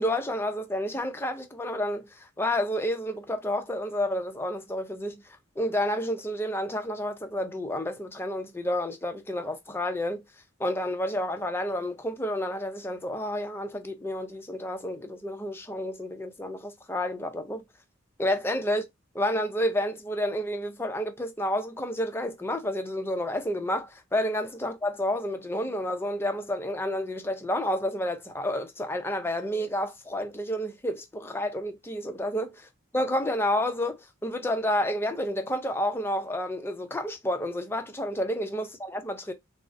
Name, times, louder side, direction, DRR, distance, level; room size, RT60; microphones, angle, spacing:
voice 1, 0.0-5.2 5.6-10.2 10.6-17.6 18.2-18.8 19.1-32.6 32.9-39.3, left 1 dB, 10° left, 0.4 m, -30 dB
3.6 x 2.0 x 2.5 m
head